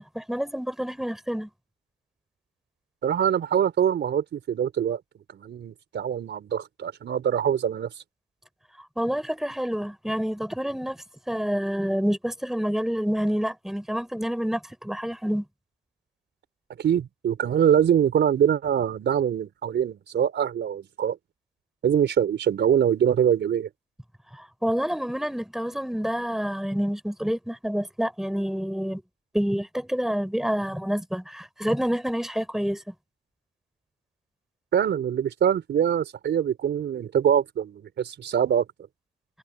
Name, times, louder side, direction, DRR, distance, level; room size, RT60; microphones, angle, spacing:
voice 1, 0.0-1.5 9.0-15.4 24.3-29.0 29.3-32.9, equal, ahead, 4.8 m, -28 dB
voice 2, 3.0-5.0 5.3-7.9 16.8-21.2 21.8-23.7 34.7-38.6, right 9 dB, 60° right, 4.6 m, -24 dB
cardioid pair, 90°, 20 cm